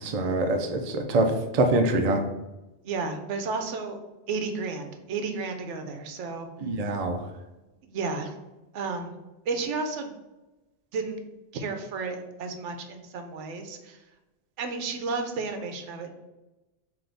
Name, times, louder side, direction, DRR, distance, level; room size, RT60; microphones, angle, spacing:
voice 1, 0.0-2.2 6.6-7.2, right 2 dB, 50° right, 4 dB, 0.4 m, -24 dB
voice 2, 2.8-4.0 4.3-6.5 7.8-8.3 8.7-9.2 9.5-10.1 10.9-11.2 11.5-14.0 14.6-16.1, right 4 dB, 75° right, 5 dB, 0.9 m, -32 dB
3.4 x 3.0 x 3.9 m, 1.0 s
omnidirectional pair, 1.2 m